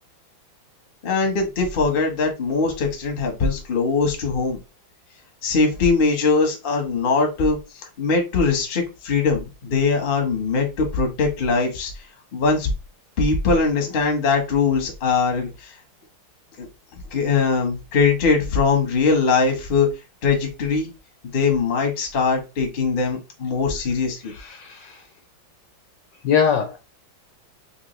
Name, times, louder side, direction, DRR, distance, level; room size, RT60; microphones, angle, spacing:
voice 1, 1.0-4.6 5.4-7.6 8.0-11.9 12.3-12.7 13.2-15.7 16.6-16.7 17.1-19.9 20.2-20.9 21.3-24.3, left 4 dB, 40° left, 0.8 m, -21 dB
voice 2, 24.3-25.0 26.2-26.8, left 7 dB, 70° left, 1.1 m, -22 dB
3.7 x 2.9 x 3.0 m
omnidirectional pair, 2.3 m